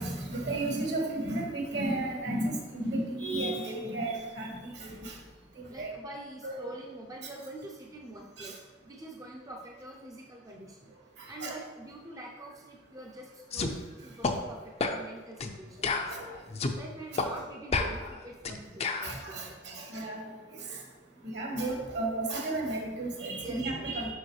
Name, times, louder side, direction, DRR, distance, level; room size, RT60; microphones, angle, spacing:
voice 1, 0.0-5.1 5.6-5.9 6.4-6.7 8.4-8.5 11.2-11.5 16.1-16.2 19.0-20.2 20.5-20.7 21.3-24.1, right 2 dB, 65° right, -1 dB, 1.6 m, -33 dB
voice 2, 5.7-10.9 11.3-16.3 16.7-19.9 23.4-23.9, right 1 dB, 20° right, -1 dB, 0.5 m, -46 dB
sound 1, 13.5-13.7 14.2-14.4 14.8-15.0 15.4-15.5 15.8-16.8 17.2-17.3 17.7-19.1, left 3 dB, 35° left, 0.5 m, -30 dB
6.3 x 5.5 x 3.2 m, 1.4 s
head